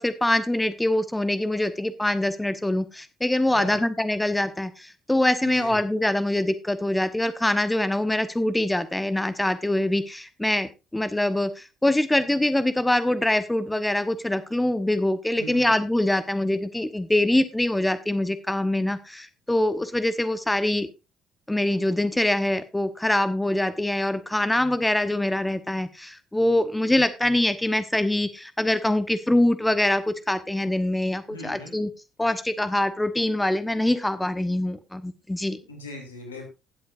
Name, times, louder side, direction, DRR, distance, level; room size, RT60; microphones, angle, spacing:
voice 1, 0.0-20.9 21.5-31.9 32.2-35.6, left 1 dB, 10° left, 12 dB, 1.0 m, -24 dB
voice 2, 5.4-5.8 15.4-15.8 31.3-31.7 35.7-36.4, left 2 dB, 90° left, 3 dB, 2.7 m, -39 dB
18.0 x 7.9 x 2.6 m, 0.26 s
hypercardioid pair, 50°, 0 cm